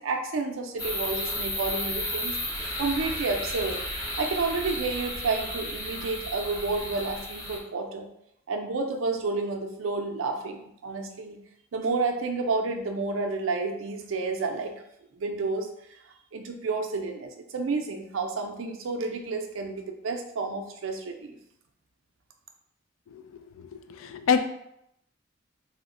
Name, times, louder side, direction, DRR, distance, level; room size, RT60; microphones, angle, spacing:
voice 1, 0.0-2.3 2.8-3.8 4.2-8.1 8.5-11.4 11.7-14.8 15.1-15.7 16.3-21.4, right 3 dB, 75° right, 4 dB, 0.4 m, -30 dB
sound 1, 0.8-7.6, left 1 dB, 20° left, 0.5 m, -33 dB
voice 2, 23.9-24.4, left 6 dB, 80° left, 8 dB, 0.3 m, -24 dB
2.9 x 2.1 x 3.6 m, 0.78 s
head